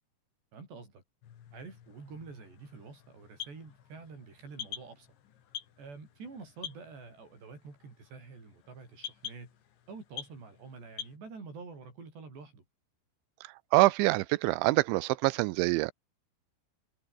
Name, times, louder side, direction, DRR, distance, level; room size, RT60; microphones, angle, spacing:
voice 1, 0.5-1.0 1.5-5.1 5.8-9.5 9.9-12.7, right 4 dB, 65° right, 9.9 m, -47 dB
sound 1, 1.2-11.2, left 10 dB, 80° left, 4.9 m, -47 dB
voice 2, 13.7-15.9, right 21 dB, 90° right, 3.1 m, -25 dB
omnidirectional pair, 5.3 m